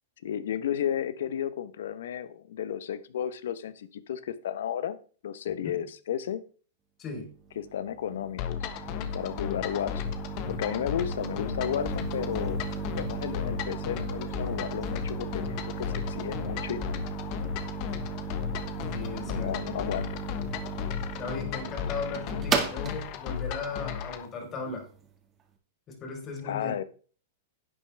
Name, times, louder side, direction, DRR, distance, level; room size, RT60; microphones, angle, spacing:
voice 1, 0.2-5.0 5.2-6.4 7.6-8.7 9.1-10.2 10.5-12.6 13.0-16.9 19.3-20.2 26.4-26.8, left 9 dB, 75° left, 15 dB, 0.9 m, -33 dB
voice 2, 7.0-7.3 18.9-19.5 21.2-24.9 25.9-26.8, left 4 dB, 30° left, 2 dB, 4.0 m, -37 dB
sound 1, 7.4-25.0, right 6 dB, 25° right, 1.9 m, -36 dB
sound 2, 8.4-24.3, left 9 dB, 45° left, 1.2 m, -35 dB
11.0 x 8.6 x 3.4 m, 0.40 s
hypercardioid pair, 120°, 0 cm